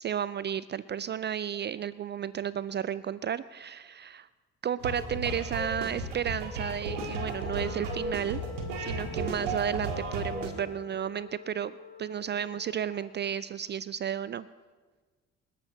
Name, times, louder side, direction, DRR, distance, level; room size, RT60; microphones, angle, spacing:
voice 1, 0.0-4.3 4.6-8.4 8.8-11.7 12.0-14.5, right 9 dB, 30° right, 18 dB, 0.4 m, -33 dB
sound 1, 4.8-10.5, right 2 dB, 80° right, 1.8 m, -34 dB
Wind instrument woodwind instrument, 6.9-13.2, left 6 dB, 35° left, 1.7 m, -46 dB
28.0 x 12.0 x 2.8 m, 1.4 s
figure-of-eight pair, 45°, 37 cm